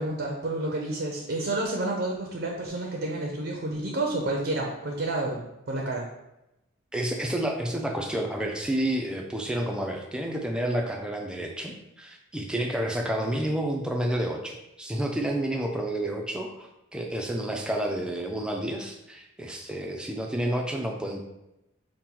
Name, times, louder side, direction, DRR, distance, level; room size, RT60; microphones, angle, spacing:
voice 1, 0.0-6.1, right 2 dB, 55° right, 0 dB, 0.5 m, -30 dB
voice 2, 6.9-21.2, right 1 dB, 5° right, 1 dB, 0.4 m, -30 dB
4.3 x 2.1 x 3.8 m, 0.90 s
head